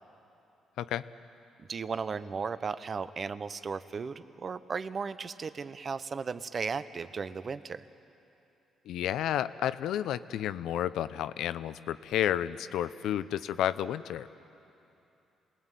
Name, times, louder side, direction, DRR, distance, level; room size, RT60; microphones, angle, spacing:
voice 1, 1.7-7.8, right 5 dB, 40° right, 13 dB, 0.8 m, -35 dB
voice 2, 8.8-14.3, left 11 dB, 80° left, 14 dB, 0.6 m, -31 dB
27.0 x 19.5 x 9.2 m, 2.9 s
cardioid pair, 90°, 0 cm